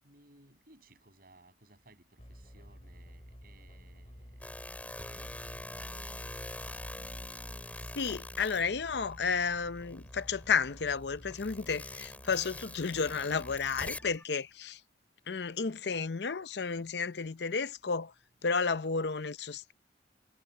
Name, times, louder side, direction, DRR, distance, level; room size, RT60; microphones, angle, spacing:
voice 1, 0.0-6.2 16.8-17.0, right 2 dB, 55° right, 7.1 m, -62 dB
sound 1, 2.2-14.2, equal, 30° left, 6.3 m, -52 dB
sound 2, 4.4-9.4 9.8-14.2, left 1 dB, 10° left, 4.1 m, -44 dB
voice 2, 8.0-14.8 15.3-18.1 18.4-19.7, left 5 dB, 65° left, 0.7 m, -32 dB
head